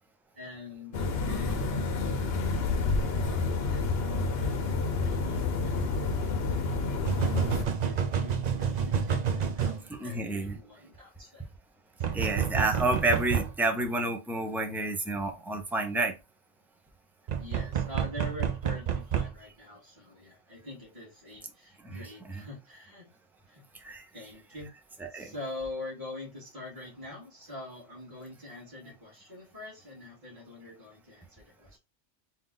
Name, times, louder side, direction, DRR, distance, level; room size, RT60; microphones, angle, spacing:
voice 1, 0.3-1.6 3.2-11.5 12.1-12.4 17.3-23.1 23.5-23.6 24.1-24.7 25.1-31.8, left 2 dB, 15° right, 2.1 m, -44 dB
sound 1, 0.9-7.7, left 3 dB, 60° left, 0.9 m, -29 dB
voice 2, 1.2-1.6 9.9-10.6 12.1-16.1 21.8-22.0 22.3-22.4 23.7-24.0 25.0-25.3, right 2 dB, ahead, 0.5 m, -30 dB
sound 2, 5.1-5.2 7.0-9.8 12.0-13.5 17.3-19.3, right 7 dB, 50° right, 0.5 m, -29 dB
3.8 x 2.7 x 3.8 m
omnidirectional pair, 1.2 m